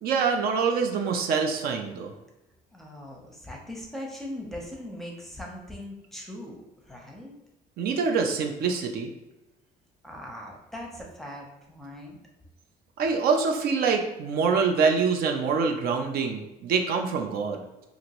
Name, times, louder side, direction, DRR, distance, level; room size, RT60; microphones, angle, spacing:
voice 1, 0.0-2.1 7.8-9.1 13.0-17.6, right 5 dB, 65° right, 4 dB, 0.4 m, -25 dB
voice 2, 2.7-7.4 10.0-12.2, left 1 dB, ahead, -1 dB, 0.7 m, -40 dB
2.9 x 2.5 x 2.9 m, 0.98 s
cardioid pair, 110°, 17 cm